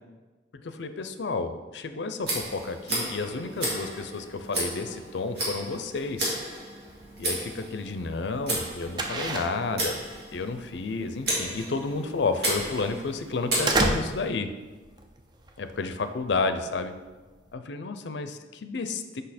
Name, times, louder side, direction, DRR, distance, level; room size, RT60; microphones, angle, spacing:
voice 1, 0.6-6.4 7.2-10.0 10.3-14.5 15.6-17.0 17.5-19.2, left 3 dB, 70° left, 9 dB, 0.5 m, -31 dB
Tick, 2.2-14.3, right 1 dB, 60° right, 2.2 m, -34 dB
sound 1, 6.8-17.5, right 2 dB, 25° right, 0.5 m, -33 dB
6.4 x 5.2 x 4.2 m, 1.3 s
head